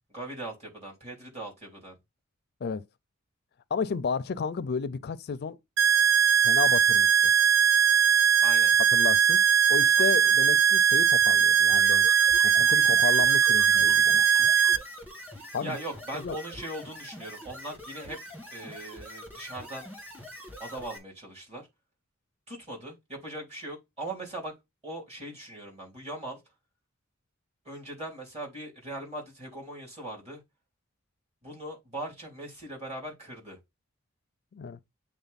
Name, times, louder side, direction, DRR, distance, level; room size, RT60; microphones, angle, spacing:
voice 1, 0.1-2.0 8.4-8.7 10.2-10.3 15.6-18.2 18.5-19.9 20.6-21.7 22.5-24.6 24.8-26.4 27.6-30.4 31.4-33.6, right 1 dB, 30° right, 3.1 m, -40 dB
voice 2, 3.7-5.6 6.4-7.3 8.9-9.4 9.7-12.1 12.4-14.2 15.5-15.8 16.1-16.4 34.5-34.8, left 5 dB, 50° left, 0.4 m, -32 dB
sound 1, 5.8-14.8, right 7 dB, 65° right, 0.5 m, -20 dB
sound 2, 11.7-21.0, left 1 dB, 10° right, 2.0 m, -44 dB
8.0 x 3.7 x 4.0 m
head